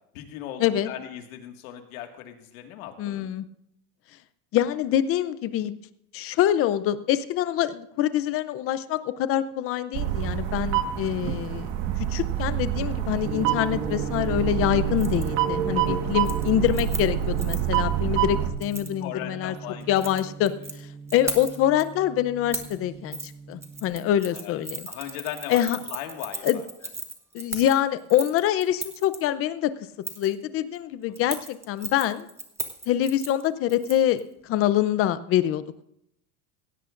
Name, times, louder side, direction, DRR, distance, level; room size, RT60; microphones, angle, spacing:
voice 1, 0.1-3.3 19.0-20.1 24.3-24.6 24.9-26.7 31.1-31.3, left 10 dB, 70° left, 4 dB, 2.0 m, -38 dB
voice 2, 3.0-3.4 4.5-5.7 6.1-11.7 12.1-19.5 19.9-20.5 21.1-24.9 25.5-25.8 26.4-26.6 27.3-29.7 30.2-32.3 32.9-35.8, left 11 dB, 30° left, 13 dB, 0.6 m, -25 dB
sound 1, 9.9-18.5, right 10 dB, 60° right, 1.6 m, -27 dB
Gong, 13.2-23.9, right 5 dB, 80° right, 5.2 m, -38 dB
Keys jangling, 15.0-15.3 15.6-15.9 16.2-17.8 18.6-18.9 19.8-20.7 21.1-21.8 22.5-22.8 23.1-23.3 23.6-29.2 30.0-30.3 31.2-34.2 34.5-34.6, right 2 dB, 5° right, 0.9 m, -37 dB
16.5 x 16.5 x 2.6 m, 0.77 s
supercardioid pair, 150°, 44 cm